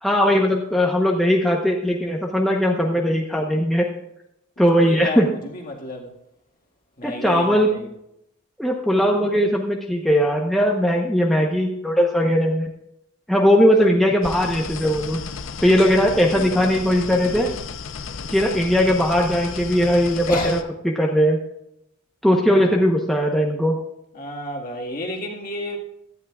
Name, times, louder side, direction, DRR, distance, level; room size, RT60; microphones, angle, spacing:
voice 1, 0.0-3.9 4.6-5.3 7.0-7.7 8.6-12.7 13.3-15.2 15.6-17.5 18.3-20.6 20.8-21.4 22.2-23.8, equal, ahead, 0.9 m, -19 dB
voice 2, 4.6-5.2 5.5-6.1 7.0-7.9 16.1-16.7 17.1-17.6 20.3-20.6 24.2-25.8, left 1 dB, 40° left, 1.9 m, -31 dB
sound 1, 14.2-20.6, left 5 dB, 60° left, 0.7 m, -34 dB
16.5 x 12.5 x 2.4 m
head